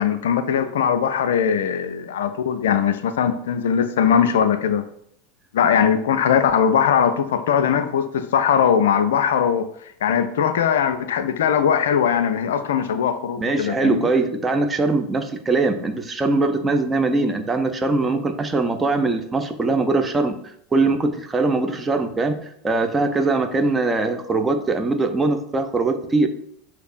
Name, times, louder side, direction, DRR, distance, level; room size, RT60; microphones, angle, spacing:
voice 1, 0.0-4.9 5.5-9.7 10.0-14.1, left 8 dB, 65° left, 10 dB, 0.3 m, -20 dB
voice 2, 13.4-20.4 20.7-22.4 22.6-26.3, right 3 dB, 15° right, 6 dB, 0.5 m, -21 dB
5.9 x 2.9 x 2.5 m, 0.70 s
figure-of-eight pair, 80°, 0 cm